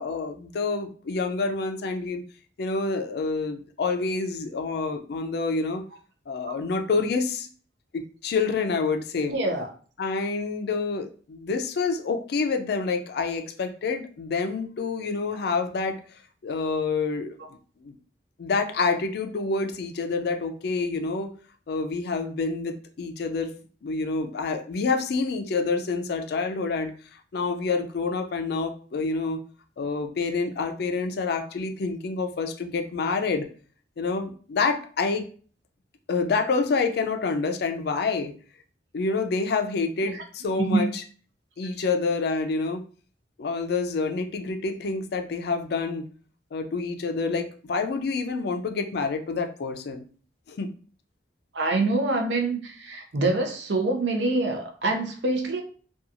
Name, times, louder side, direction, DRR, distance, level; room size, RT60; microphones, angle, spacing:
voice 1, 0.0-2.2 2.6-5.8 6.3-7.5 7.9-9.4 10.0-16.0 16.4-17.3 17.8-18.0 18.4-21.3 21.7-23.5 23.8-26.9 27.3-29.4 29.8-33.5 34.0-35.3 36.1-38.3 38.9-41.0 41.6-42.8 43.4-46.1 46.5-50.0 50.5-50.7, left 4 dB, 65° left, 6 dB, 0.4 m, -27 dB
voice 2, 9.3-9.7 40.7-40.8 51.5-55.6, right 2 dB, 80° right, 4 dB, 0.6 m, -25 dB
2.7 x 2.3 x 2.5 m, 0.42 s
head